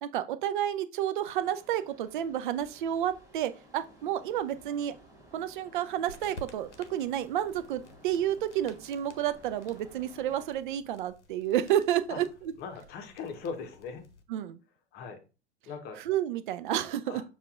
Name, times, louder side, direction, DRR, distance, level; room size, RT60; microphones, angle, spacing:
voice 1, 0.0-4.9 5.3-12.5 14.3-14.6 16.1-17.2, right 11 dB, 45° right, 0.4 m, -30 dB
sound 1, 1.2-10.5, right 1 dB, 10° right, 0.9 m, -56 dB
sound 2, 6.1-14.2, left 1 dB, 80° left, 0.8 m, -53 dB
voice 2, 12.6-14.0 14.9-15.2 15.7-16.0 17.1-17.2, left 5 dB, 30° left, 0.9 m, -39 dB
6.7 x 2.4 x 2.4 m
figure-of-eight pair, 95°, 35 cm